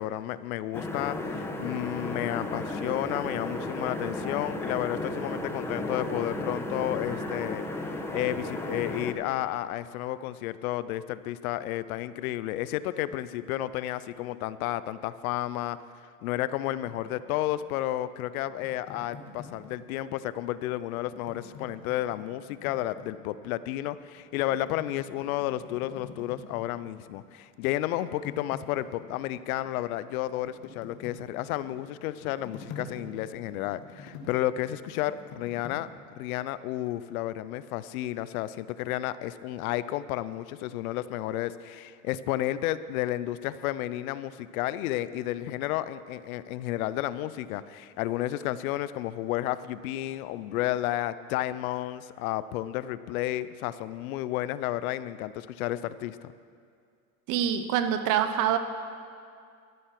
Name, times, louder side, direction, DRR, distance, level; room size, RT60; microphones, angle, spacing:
voice 1, 0.0-15.8 16.2-35.9 36.2-56.3, left 14 dB, 80° left, 15 dB, 0.6 m, -32 dB
sound 1, 0.7-9.1, left 2 dB, 5° left, 1.0 m, -34 dB
sound 2, 16.9-20.3 21.0-23.7 24.1-27.4 27.6-35.9, left 4 dB, 40° left, 1.8 m, -48 dB
voice 2, 57.3-58.6, right 9 dB, 45° right, 10 dB, 1.0 m, -25 dB
12.5 x 9.5 x 5.9 m, 2.3 s
supercardioid pair, 120°, 43 cm